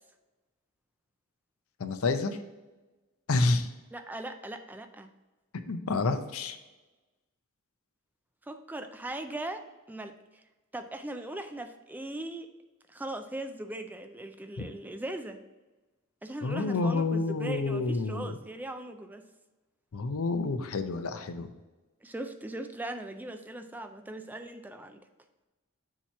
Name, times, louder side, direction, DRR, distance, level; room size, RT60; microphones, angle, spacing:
voice 1, 1.8-2.4 3.3-3.7 5.7-6.6 16.4-18.3 19.9-21.5, left 3 dB, 75° left, 9 dB, 0.6 m, -29 dB
voice 2, 3.9-5.1 8.5-10.1 10.7-12.5 12.9-15.4 16.2-19.2 22.0-25.0, right 1 dB, 10° right, 7 dB, 0.3 m, -39 dB
7.1 x 3.0 x 5.7 m, 1.2 s
head